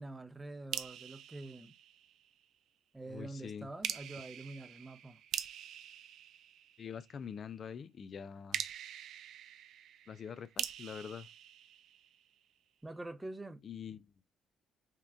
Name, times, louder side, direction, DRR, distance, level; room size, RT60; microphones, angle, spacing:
voice 1, 0.0-1.7 2.9-5.2 12.8-13.6, right 2 dB, 15° right, 0.6 m, -46 dB
sound 1, 0.7-2.4 3.8-7.2 8.5-12.4, right 10 dB, 75° right, 0.4 m, -44 dB
voice 2, 3.1-3.7 6.8-8.6 10.1-11.3 13.6-14.1, left 7 dB, 55° left, 0.3 m, -45 dB
5.5 x 2.4 x 2.3 m
cardioid pair, 75°, 0 cm